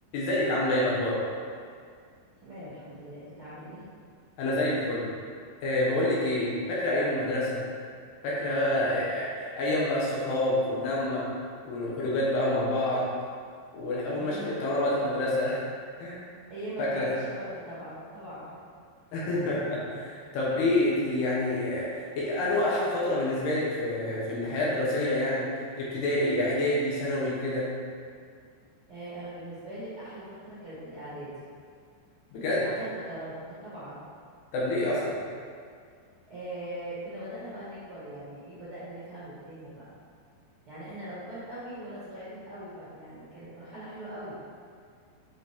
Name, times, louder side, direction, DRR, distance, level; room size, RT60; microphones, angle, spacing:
voice 1, 0.1-1.2 4.4-5.1 5.6-7.6 8.2-11.2 11.6-13.0 13.7-14.4 14.6-15.7 16.0-16.2 16.8-17.1 19.1-25.5 25.8-27.7 32.3-32.7 34.5-35.2, left 1 dB, 70° left, -6 dB, 2.8 m, -27 dB
voice 2, 2.3-3.8 14.2-14.5 16.5-18.6 28.9-31.4 32.4-34.1 36.3-39.8 40.7-44.4, right 1 dB, 45° right, -13 dB, 1.8 m, -41 dB
10.0 x 4.0 x 3.5 m, 2.1 s
omnidirectional pair, 5.2 m